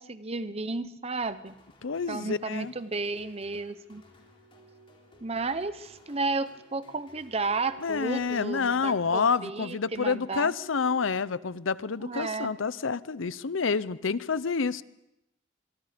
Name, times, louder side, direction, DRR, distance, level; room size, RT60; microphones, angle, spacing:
voice 1, 0.0-1.6 2.1-4.0 5.2-10.5 12.0-12.5, right 3 dB, 30° right, 13 dB, 0.9 m, -33 dB
sound 1, 1.2-9.8, left 1 dB, 25° left, 3.8 m, -60 dB
voice 2, 1.8-2.7 7.8-14.8, left 5 dB, 85° left, 17 dB, 0.7 m, -28 dB
sound 2, 3.1-12.2, left 1 dB, 75° right, 1.9 m, -57 dB
25.5 x 23.5 x 5.2 m, 0.87 s
head